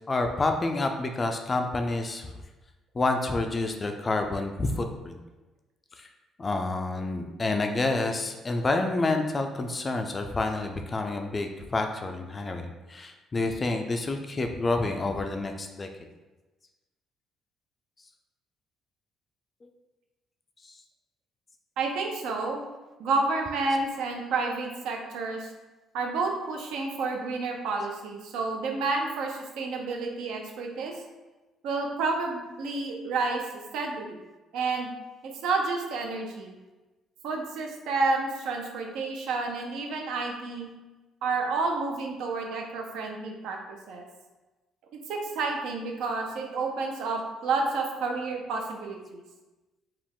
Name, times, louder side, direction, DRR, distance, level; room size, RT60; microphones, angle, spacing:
voice 1, 0.1-2.3 2.9-5.2 6.0-6.1 6.4-15.9, left 2 dB, 20° left, 5 dB, 0.3 m, -28 dB
voice 2, 21.8-22.6 23.0-25.5 25.9-30.9 31.6-33.4 33.7-34.2 34.5-34.9 35.2-36.5 37.2-40.7 41.2-43.6 43.9-44.0 44.9-49.2, right 3 dB, 80° right, 2 dB, 0.7 m, -30 dB
4.9 x 2.4 x 3.6 m, 1.1 s
cardioid pair, 160°, 0 cm